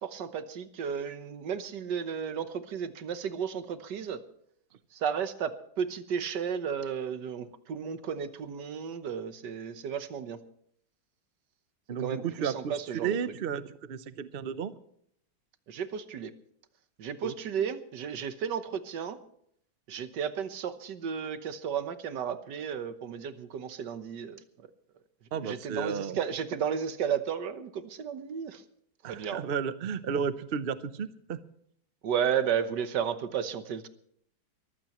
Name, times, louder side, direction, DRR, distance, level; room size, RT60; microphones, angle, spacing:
voice 1, 0.0-4.2 4.9-5.5 5.8-10.4 12.0-13.2 15.7-16.3 17.0-19.2 19.9-24.4 25.4-28.6 29.1-29.4 32.0-33.9, right 7 dB, 60° right, 11 dB, 1.6 m, -33 dB
voice 2, 11.9-14.7 17.2-17.3 25.3-26.2 29.0-31.4, right 7 dB, 85° right, 13 dB, 0.5 m, -33 dB
23.0 x 15.0 x 3.0 m, 0.68 s
omnidirectional pair, 2.2 m